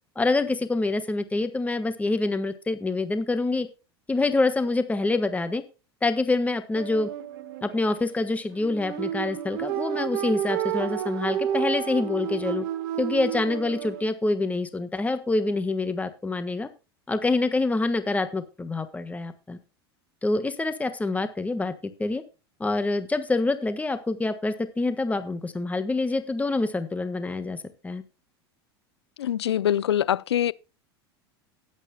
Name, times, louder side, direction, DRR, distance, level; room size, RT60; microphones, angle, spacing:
voice 1, 0.1-3.7 4.1-5.6 6.0-7.1 7.6-12.6 13.0-16.7 17.1-19.6 20.2-21.7 22.0-22.2 22.6-28.0, left 3 dB, 10° left, 1.4 m, -26 dB
sound 1, 6.7-14.0, right 10 dB, 65° right, 1.4 m, -31 dB
voice 2, 29.2-30.5, left 10 dB, 85° left, 0.5 m, -24 dB
19.5 x 8.3 x 2.3 m
hypercardioid pair, 90°, 13 cm